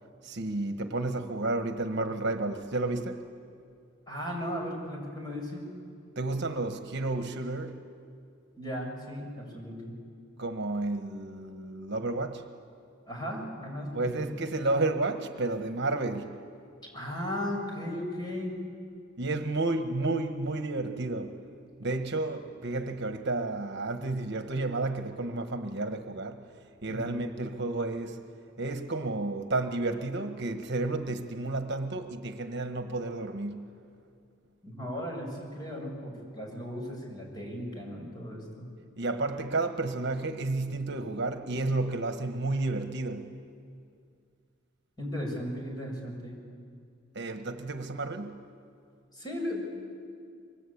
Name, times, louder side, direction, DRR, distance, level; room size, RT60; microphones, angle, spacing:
voice 1, 0.2-3.2 6.2-7.8 10.4-12.4 13.9-16.4 19.2-21.4 21.8-26.4 26.8-28.2 28.6-33.7 39.0-43.4 47.1-48.4, right 2 dB, 55° right, 1.3 m, -31 dB
voice 2, 4.1-5.6 8.6-9.9 13.1-14.3 16.9-18.5 26.9-27.2 34.6-38.7 45.0-46.3 49.1-49.6, equal, 20° left, 7.0 m, -36 dB
27.0 x 23.5 x 8.6 m
head